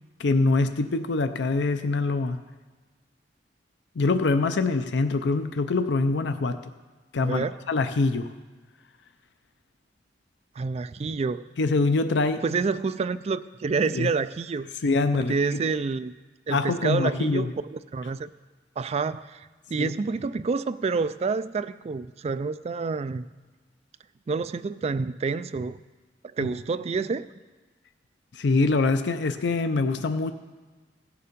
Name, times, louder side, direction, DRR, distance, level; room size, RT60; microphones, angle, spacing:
voice 1, 0.2-2.4 4.0-6.7 7.1-8.3 11.6-12.4 13.9-14.1 14.8-15.6 16.5-17.5 19.8-19.9 26.4-26.5 28.3-30.3, left 3 dB, 70° left, 10 dB, 0.5 m, -24 dB
voice 2, 7.2-7.6 10.6-11.5 12.4-14.7 15.2-16.1 16.5-18.3 18.8-23.3 24.3-25.8 26.2-27.3, right 4 dB, 35° right, 13 dB, 0.3 m, -28 dB
16.5 x 6.9 x 5.2 m, 1.3 s
head